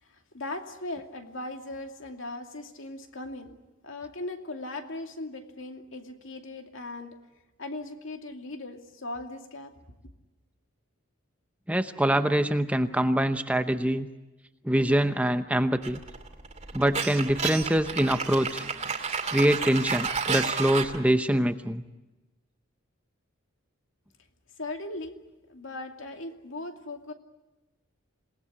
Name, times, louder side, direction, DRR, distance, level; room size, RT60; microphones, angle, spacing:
voice 1, 0.0-3.6 3.8-7.1 7.6-9.7 24.6-25.2 25.5-27.1, left 2 dB, 65° left, 5 dB, 2.5 m, -38 dB
voice 2, 11.7-14.1 14.6-16.0 16.7-18.7 19.3-21.8, right 1 dB, 5° right, 9 dB, 0.8 m, -24 dB
sound 1, 15.8-21.0, right 5 dB, 30° right, 2.5 m, -31 dB
27.5 x 19.5 x 9.8 m, 1.1 s
head